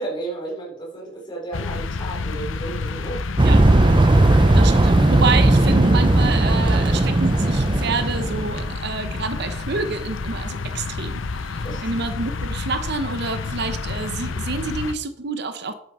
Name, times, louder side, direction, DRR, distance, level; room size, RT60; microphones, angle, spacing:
voice 1, 0.0-3.2 11.6-11.8, right 2 dB, 25° left, -4 dB, 3.7 m, -32 dB
sound 1, 1.5-14.9, left 3 dB, 90° left, 0.7 m, -30 dB
sound 2, 3.4-8.7, right 2 dB, 25° right, 0.5 m, -17 dB
voice 2, 4.5-15.7, right 4 dB, 60° right, 10 dB, 0.9 m, -28 dB
10.0 x 8.2 x 4.3 m, 0.71 s
head